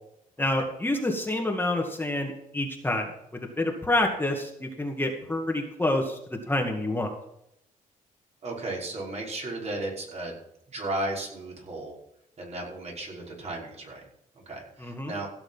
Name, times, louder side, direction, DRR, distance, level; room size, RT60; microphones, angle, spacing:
voice 1, 0.4-3.1 3.4-7.1 14.8-15.1, left 1 dB, 15° left, 2 dB, 2.1 m, -28 dB
voice 2, 8.4-10.4 10.7-11.9 12.4-14.0 14.5-15.3, right 2 dB, 50° right, -2 dB, 5.8 m, -34 dB
16.0 x 7.0 x 5.8 m, 0.78 s
cardioid pair, 90°, 15 cm